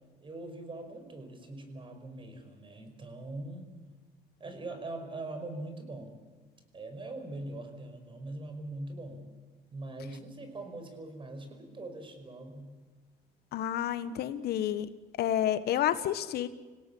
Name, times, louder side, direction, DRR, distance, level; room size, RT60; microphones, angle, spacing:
voice 1, 0.2-3.7 4.4-6.2 6.7-9.2 9.7-12.7, right 2 dB, 30° right, 7 dB, 5.2 m, -42 dB
voice 2, 13.5-14.9 15.2-16.5, left 11 dB, 70° left, 12 dB, 1.4 m, -29 dB
27.0 x 17.5 x 8.7 m, 1.3 s
cardioid pair, 110°, 17 cm